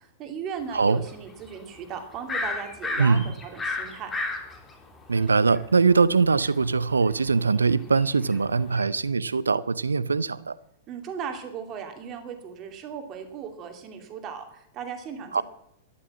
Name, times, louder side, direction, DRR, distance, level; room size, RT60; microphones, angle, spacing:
voice 1, 0.0-4.1 10.9-15.4, right 7 dB, 35° right, 2.6 m, -37 dB
sound 1, 1.1-1.6 1.9-5.6 6.0-8.8, left 3 dB, 20° left, 3.0 m, -32 dB
voice 2, 3.0-3.3 5.1-10.6 15.3-15.4, right 4 dB, 80° right, 0.6 m, -22 dB
13.0 x 11.0 x 7.4 m
figure-of-eight pair, 100°, 0 cm